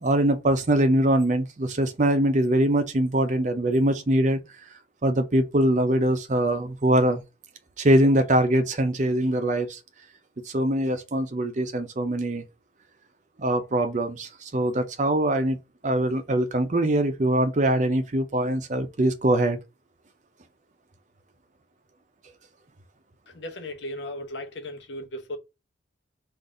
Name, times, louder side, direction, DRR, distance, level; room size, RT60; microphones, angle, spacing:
voice 1, 0.0-4.4 5.0-7.2 7.8-9.8 10.5-12.4 13.4-15.6 15.8-19.6, right 1 dB, 40° right, 0.6 m, -23 dB
voice 2, 23.3-25.4, left 1 dB, 70° left, 0.8 m, -36 dB
3.9 x 2.6 x 3.7 m
head